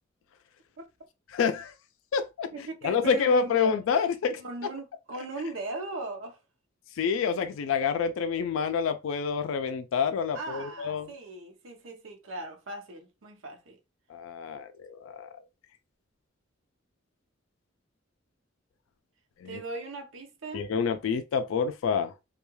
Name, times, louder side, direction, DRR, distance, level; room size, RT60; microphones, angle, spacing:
voice 1, 1.3-1.7 2.1-2.5 2.8-4.4 7.0-11.1 14.1-15.3 19.4-19.6 20.5-22.1, left 6 dB, 80° left, 0.3 m, -27 dB
voice 2, 2.5-3.7 4.4-6.4 7.3-7.4 10.3-13.8 19.5-20.7, right 2 dB, 75° right, 0.7 m, -38 dB
2.3 x 2.2 x 3.0 m
head